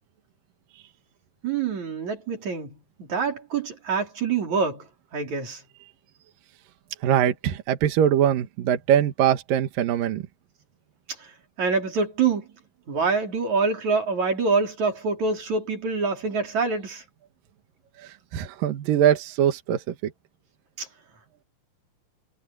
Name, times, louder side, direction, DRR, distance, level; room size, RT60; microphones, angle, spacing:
voice 1, 1.4-4.9 5.1-5.6 11.2-11.3 11.6-12.5 12.9-17.0 20.8-20.9, right 4 dB, 55° right, 5.0 m, -26 dB
voice 2, 7.0-10.2 18.0-20.1, right 10 dB, 75° right, 3.1 m, -22 dB
omnidirectional pair, 4.1 m